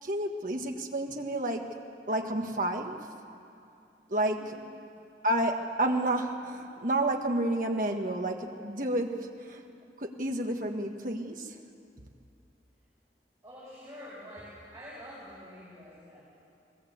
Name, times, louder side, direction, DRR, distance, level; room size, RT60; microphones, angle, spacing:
voice 1, 0.0-1.8 2.1-3.0 4.1-4.6 5.2-9.6 10.0-11.5, right 1 dB, 45° right, 3 dB, 1.6 m, -30 dB
voice 2, 13.4-16.2, equal, 20° right, -10 dB, 6.4 m, -47 dB
21.0 x 18.0 x 8.1 m, 2.6 s
head